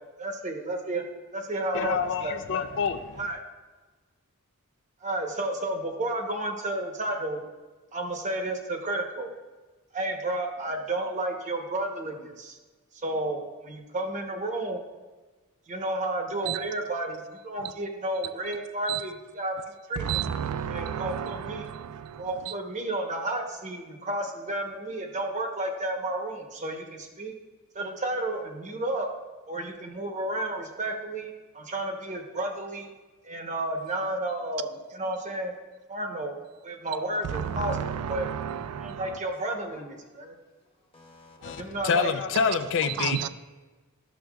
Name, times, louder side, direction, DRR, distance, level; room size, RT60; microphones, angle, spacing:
voice 1, 0.2-1.0 1.3-2.4 3.1-3.4 5.0-7.4 7.9-9.3 9.9-12.6 13.0-14.8 15.7-19.6 19.9-20.2 20.7-21.7 22.2-27.3 27.7-29.1 29.5-32.9 33.2-34.7 34.9-35.5 35.9-36.3 36.6-38.3 38.8-40.4 41.4-42.1, right 1 dB, 35° right, 0.9 m, -32 dB
voice 2, 1.7-3.2 41.4-43.2, left 6 dB, 60° left, 0.4 m, -27 dB
voice 3, 20.0-22.5 37.2-39.2 42.9-43.3, right 9 dB, 90° right, 0.3 m, -32 dB
voice 4, 39.2-41.8, left 1 dB, 25° left, 1.2 m, -56 dB
11.5 x 6.3 x 2.3 m
head